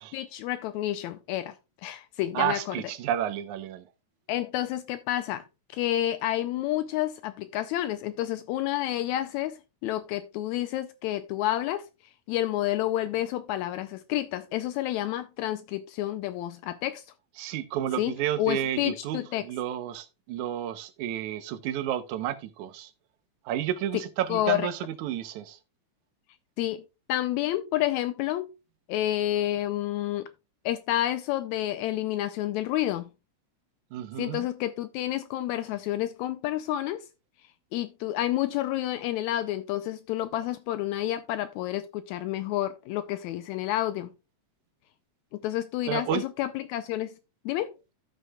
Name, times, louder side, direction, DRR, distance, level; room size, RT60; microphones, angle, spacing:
voice 1, 0.1-1.5 1.8-2.7 4.3-5.4 5.7-11.9 12.3-17.0 18.0-19.4 23.9-24.0 24.3-24.7 26.6-26.8 27.1-28.5 28.9-30.3 30.6-33.1 34.2-37.1 37.7-44.1 45.3-47.1 47.4-47.7, left 14 dB, 80° left, 1.9 m, -29 dB
voice 2, 2.3-3.8 17.4-22.9 23.5-25.6 33.9-34.5 45.8-46.2, right 11 dB, 90° right, 2.2 m, -31 dB
14.5 x 6.4 x 2.2 m
omnidirectional pair, 3.3 m